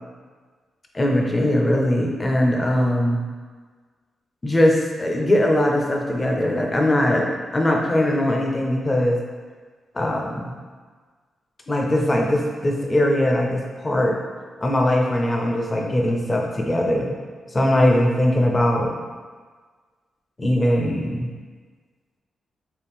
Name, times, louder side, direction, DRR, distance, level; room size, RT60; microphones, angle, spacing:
voice 1, 0.9-3.2 4.4-9.2 9.9-10.5 11.7-14.2 14.6-17.1 17.5-18.9 20.4-21.3, left 1 dB, 20° left, 0 dB, 0.5 m, -20 dB
3.5 x 2.4 x 4.2 m, 1.5 s
cardioid pair, 120°, 0 cm